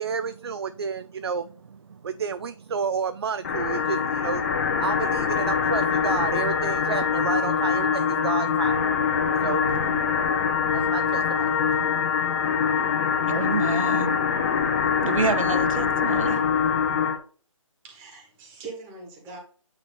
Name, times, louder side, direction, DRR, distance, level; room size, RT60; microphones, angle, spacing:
voice 1, 0.0-12.4, right 6 dB, 50° right, 0.4 m, -31 dB
sound 1, 3.4-17.2, left 6 dB, 25° left, 0.9 m, -24 dB
voice 2, 9.5-10.0 13.3-14.2 15.0-16.5, right 4 dB, 75° right, 0.9 m, -29 dB
voice 3, 17.8-19.4, right 4 dB, 10° right, 1.5 m, -41 dB
8.9 x 3.1 x 4.2 m
figure-of-eight pair, 160°, 17 cm